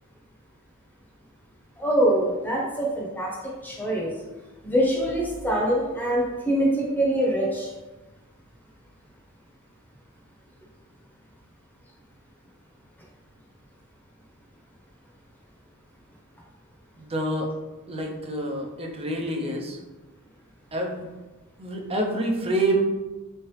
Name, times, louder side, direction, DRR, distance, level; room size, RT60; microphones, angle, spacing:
voice 1, 1.8-3.4 3.6-4.1 4.6-7.7, right 1 dB, 10° left, -4 dB, 0.8 m, -24 dB
voice 2, 17.0-17.5 17.9-19.8 20.7-21.0 21.6-22.8, right 1 dB, 25° right, 1 dB, 0.5 m, -27 dB
3.6 x 3.2 x 3.1 m, 1.2 s
head